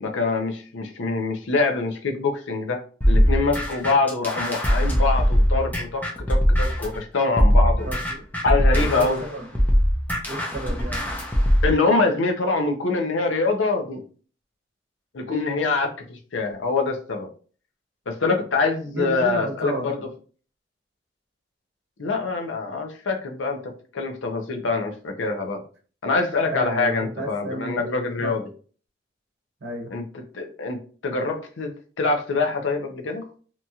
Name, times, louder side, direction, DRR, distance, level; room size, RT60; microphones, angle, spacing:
voice 1, 0.0-2.8 3.1-7.9 8.4-9.2 11.6-14.0 15.1-17.3 18.1-20.1 22.0-25.6 26.0-28.5 29.9-30.8 31.0-31.7 32.0-33.3, left 3 dB, 90° left, 4 dB, 0.6 m, -24 dB
sound 1, 3.0-7.0 7.4-11.7, equal, 10° left, 0.5 m, -21 dB
voice 2, 7.8-8.2 8.7-9.5 10.3-11.0 18.9-19.9 26.5-28.4 29.6-29.9, right 1 dB, 70° right, 1 dB, 0.8 m, -32 dB
2.9 x 2.3 x 2.7 m, 0.41 s
head